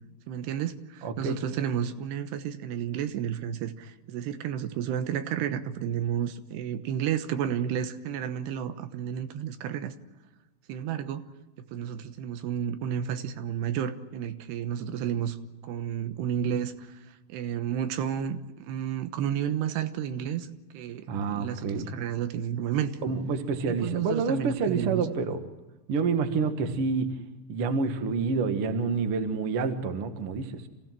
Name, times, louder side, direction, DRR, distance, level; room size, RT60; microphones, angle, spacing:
voice 1, 0.3-9.9 10.7-11.2 11.7-15.4 15.6-17.0 17.3-20.5 20.7-22.9 23.7-25.0, right 9 dB, 85° right, 9 dB, 3.2 m, -31 dB
voice 2, 1.0-1.4 21.1-21.9 23.0-25.4 25.9-27.2 27.5-30.6, right 4 dB, 50° right, 7 dB, 1.8 m, -28 dB
26.5 x 16.5 x 7.5 m, 1.1 s
omnidirectional pair, 4.7 m